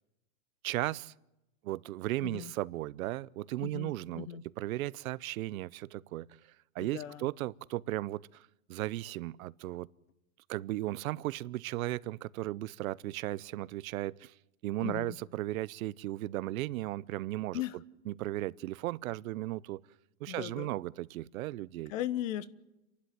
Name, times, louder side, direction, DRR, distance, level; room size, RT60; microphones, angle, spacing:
voice 1, 0.6-1.1 1.6-4.3 4.6-6.3 6.7-9.9 10.5-14.3 14.6-17.6 18.1-19.8 20.2-21.9, right 16 dB, 75° right, 0.8 m, -36 dB
voice 2, 3.6-4.4 6.8-7.2 14.8-15.1 17.5-17.8 20.3-20.7 21.9-22.5, left 13 dB, 65° left, 1.2 m, -37 dB
29.0 x 12.0 x 9.3 m
supercardioid pair, 155°, 42 cm